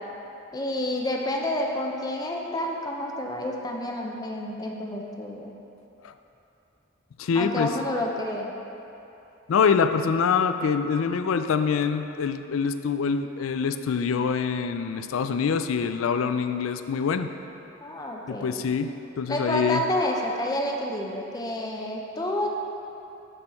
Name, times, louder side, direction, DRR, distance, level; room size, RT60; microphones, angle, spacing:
voice 1, 0.5-5.6 7.3-8.5 17.8-18.5 19.3-22.5, left 1 dB, 20° left, 0 dB, 0.7 m, -29 dB
voice 2, 7.2-7.8 9.5-17.3 18.3-19.8, left 6 dB, 90° left, 9 dB, 0.4 m, -25 dB
12.0 x 4.4 x 4.2 m, 2.9 s
head